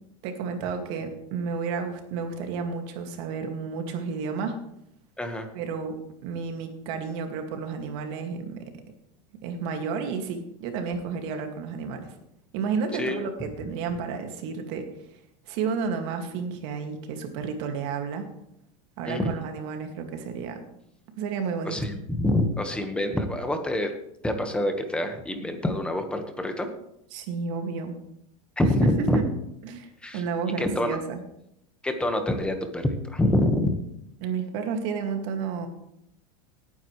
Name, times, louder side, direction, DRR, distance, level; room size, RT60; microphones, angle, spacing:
voice 1, 0.2-4.6 5.5-6.0 6.2-8.6 9.4-12.1 12.5-14.9 15.5-18.3 19.0-20.6 21.2-21.8 27.1-27.9 28.8-29.3 29.6-31.2 34.2-35.7, right 5 dB, 60° right, 5 dB, 2.2 m, -31 dB
voice 2, 5.2-5.5 13.0-13.3 19.1-19.4 21.6-23.9 24.2-26.7 28.6-29.2 30.0-30.2 30.6-31.0 31.8-33.7, left 1 dB, 5° left, 6 dB, 1.5 m, -26 dB
18.0 x 9.5 x 3.3 m, 0.79 s
supercardioid pair, 140°, 17 cm